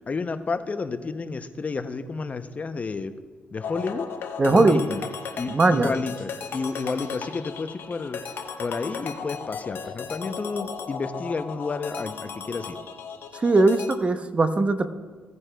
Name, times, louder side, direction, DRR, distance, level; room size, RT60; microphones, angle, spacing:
voice 1, 0.0-3.1 3.5-4.1 4.5-5.0 5.4-12.8, left 4 dB, 35° left, 10 dB, 0.6 m, -31 dB
sound 1, 3.6-13.9, left 6 dB, 65° left, 0.9 m, -36 dB
voice 2, 4.4-4.8 5.5-5.9 13.3-14.9, right 2 dB, 30° right, 10 dB, 0.7 m, -19 dB
16.5 x 9.4 x 2.2 m, 1.4 s
cardioid pair, 80°, 4 cm